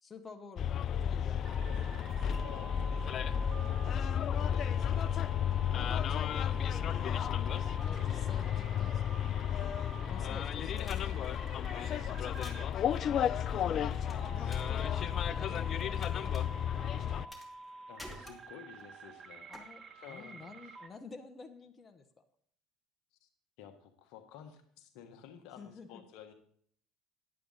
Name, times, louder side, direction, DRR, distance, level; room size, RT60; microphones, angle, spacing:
voice 1, 0.0-2.1 7.8-9.4 9.7-10.8 14.1-15.1 15.4-17.4 19.5-22.2 25.6-26.0, left 4 dB, 30° left, 5 dB, 1.2 m, -50 dB
Bus, 0.6-17.3, left 9 dB, 50° left, 0.4 m, -33 dB
sound 1, 1.4-20.9, right 3 dB, 40° right, 1.2 m, -49 dB
voice 2, 1.5-1.9 2.2-3.4 3.7-5.1 5.7-6.8 10.1-13.0 14.4-14.5 17.9-19.5 19.9-20.5 23.2-23.3 23.6-26.3, left 9 dB, 70° left, 6 dB, 1.3 m, -53 dB
sound 2, 10.8-11.7 12.2-12.7 14.1-14.7 15.0-16.1 16.3-16.4 17.3-17.7 18.0-18.8 19.5-19.6, left 1 dB, ahead, 2.6 m, -50 dB
10.0 x 8.5 x 4.0 m, 0.63 s
hypercardioid pair, 75°, 0 cm